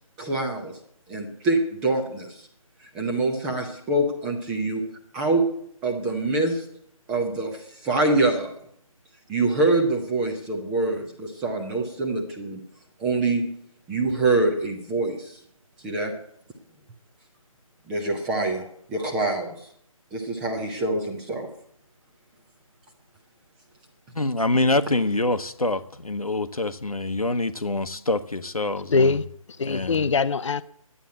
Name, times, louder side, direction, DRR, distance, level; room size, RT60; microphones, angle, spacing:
voice 1, 0.2-0.8 1.1-2.4 2.9-4.8 5.1-5.4 5.8-6.6 7.1-8.6 9.3-12.6 13.0-13.4 13.9-15.4 15.8-16.1 17.9-19.5 20.1-21.5, right 2 dB, 5° right, 0.5 m, -25 dB
voice 2, 24.1-29.1 29.6-30.1, left 2 dB, 90° left, 1.0 m, -25 dB
voice 3, 28.9-30.6, left 4 dB, 60° left, 0.5 m, -23 dB
11.5 x 9.1 x 8.2 m
figure-of-eight pair, 155°, 18 cm